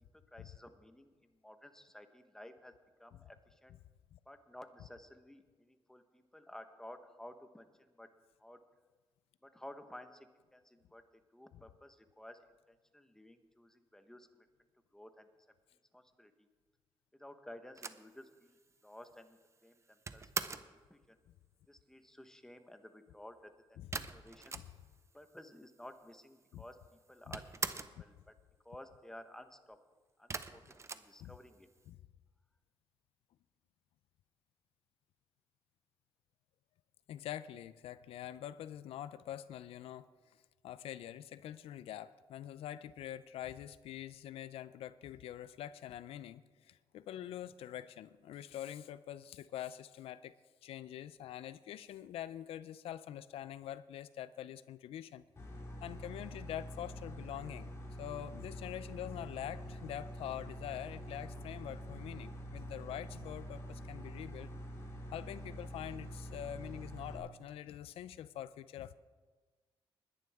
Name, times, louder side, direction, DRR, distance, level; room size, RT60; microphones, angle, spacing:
voice 1, 0.3-1.1 1.4-3.8 4.3-8.1 8.4-8.7 9.4-10.3 10.5-11.0 11.3-12.4 12.7-14.5 14.9-15.3 15.9-16.5 17.2-18.6 18.8-20.5 20.9-21.2 21.7-23.5 24.1-24.6 25.1-27.7 28.0-28.2 28.6-29.8 30.2-31.7, left 1 dB, 5° left, 8 dB, 1.1 m, -54 dB
sound 1, 17.8-20.8 23.9-25.1 25.4-25.5 25.6-26.4 26.7-28.1 30.3-31.8, right 4 dB, 30° right, 0.7 m, -42 dB
voice 2, 37.1-40.4 40.6-50.3 50.6-55.2 55.8-57.7 58.0-64.5 65.1-68.9, left 11 dB, 85° left, 16 dB, 0.4 m, -45 dB
sound 2, 55.4-67.2, equal, 30° left, 4.2 m, -46 dB
20.5 x 11.0 x 3.5 m, 1.4 s
cardioid pair, 85°, 10 cm